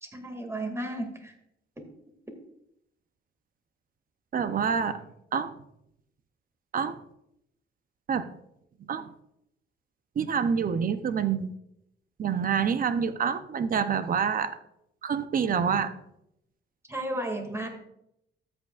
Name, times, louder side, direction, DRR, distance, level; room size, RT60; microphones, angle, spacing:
voice 1, 0.0-1.3 1.8-1.9 16.8-17.7, right 1 dB, 15° right, 3 dB, 2.3 m, -34 dB
voice 2, 4.3-5.0 5.3-5.5 6.7-7.0 8.1-8.3 8.9-9.1 10.2-11.5 12.2-14.6 15.0-15.9, right 7 dB, 45° right, 12 dB, 0.7 m, -27 dB
13.5 x 8.0 x 2.5 m, 0.79 s
cardioid pair, 90°, 20 cm